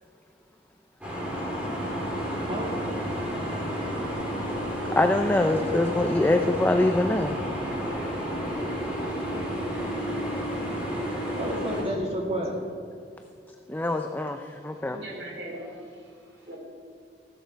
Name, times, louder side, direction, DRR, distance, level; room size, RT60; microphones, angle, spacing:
sound 1, 1.0-11.8, equal, 5° right, 3.9 m, -31 dB
voice 1, 4.9-7.4 13.7-15.0, left 2 dB, 10° left, 5 dB, 0.5 m, -24 dB
voice 2, 11.3-12.6, equal, 35° right, 0 dB, 2.4 m, -31 dB
voice 3, 14.5-16.6, right 1 dB, 85° right, -1 dB, 3.8 m, -41 dB
15.5 x 13.0 x 4.6 m, 2.4 s
head